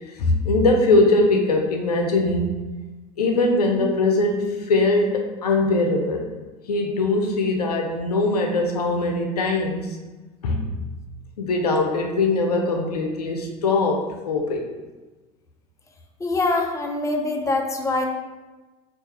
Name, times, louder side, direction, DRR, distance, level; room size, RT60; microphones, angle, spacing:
voice 1, 0.1-2.6 3.2-6.3 6.7-10.0 10.4-10.7 11.4-14.6, left 2 dB, 85° left, 2 dB, 0.5 m, -21 dB
voice 2, 16.2-18.0, left 2 dB, 15° left, 2 dB, 0.6 m, -24 dB
3.5 x 2.6 x 4.1 m, 1.2 s
hypercardioid pair, 75°, 19 cm